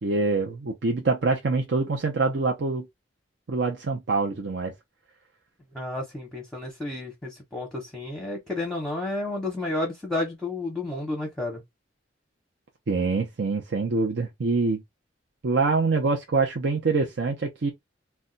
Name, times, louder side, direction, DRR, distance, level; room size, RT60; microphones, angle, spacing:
voice 1, 0.0-2.9 3.5-4.7 12.9-14.8 15.4-17.7, right 3 dB, 70° right, 0.6 m, -25 dB
voice 2, 5.7-11.6, left 2 dB, 5° left, 0.7 m, -31 dB
2.3 x 2.2 x 3.8 m
head